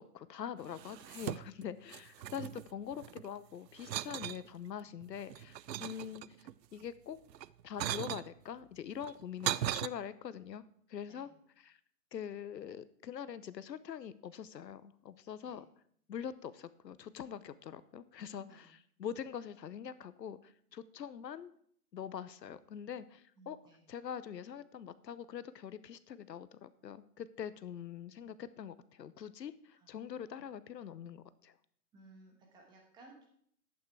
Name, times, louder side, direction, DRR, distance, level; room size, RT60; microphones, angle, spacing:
voice 1, 0.0-6.2 6.7-7.2 7.6-10.6 10.9-11.3 11.6-11.8 12.1-15.6 16.1-21.5 21.9-23.6 23.9-31.6, left 8 dB, 85° left, 16 dB, 0.9 m, -44 dB
sound 1, 0.7-1.7 1.9-3.3 3.8-4.4 5.0-6.5 7.3-8.3 9.0-9.9, right 12 dB, 80° right, 0.6 m, -38 dB
voice 2, 5.8-6.1 11.1-11.3 15.4-15.6 18.3-18.7 23.4-23.8 29.7-29.9 31.9-33.3, right 2 dB, 10° right, 1 dB, 1.3 m, -59 dB
11.0 x 8.5 x 4.7 m, 0.64 s
hypercardioid pair, 160°, 49 cm